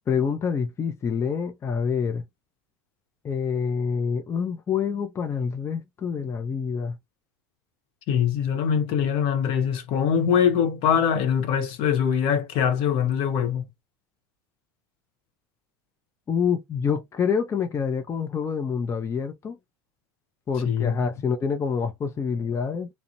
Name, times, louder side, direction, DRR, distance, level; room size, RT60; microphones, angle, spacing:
voice 1, 0.1-2.2 3.2-7.0 16.3-19.6 20.5-22.9, left 6 dB, 25° left, 0.5 m, -27 dB
voice 2, 8.1-13.6 20.6-21.0, left 8 dB, 55° left, 0.8 m, -23 dB
2.4 x 2.0 x 2.8 m
hypercardioid pair, 80°, 11 cm